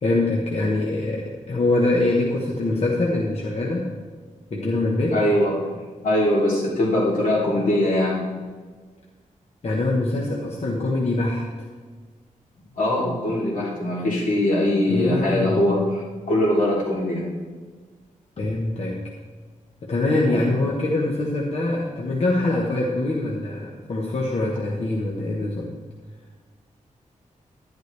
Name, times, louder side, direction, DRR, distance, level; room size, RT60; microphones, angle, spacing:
voice 1, 0.0-3.9 4.5-5.2 9.6-11.5 14.9-15.6 18.4-19.0 19.8-25.7, left 2 dB, 50° left, -2 dB, 1.2 m, -24 dB
voice 2, 5.1-5.5 6.0-8.2 12.7-17.2 20.3-20.5, left 1 dB, 75° left, -5 dB, 3.3 m, -22 dB
11.0 x 11.0 x 3.4 m, 1.5 s
wide cardioid pair, 150°, 14 cm